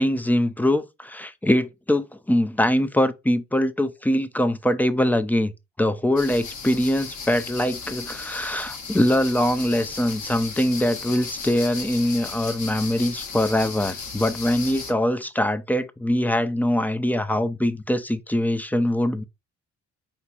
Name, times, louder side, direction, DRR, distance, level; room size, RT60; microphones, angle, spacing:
voice 1, 0.0-5.5 5.8-19.2, left 1 dB, 5° left, 0.4 m, -23 dB
sound 1, 6.2-14.9, left 5 dB, 70° left, 1.1 m, -36 dB
4.3 x 4.0 x 2.3 m
cardioid pair, 90°, 30 cm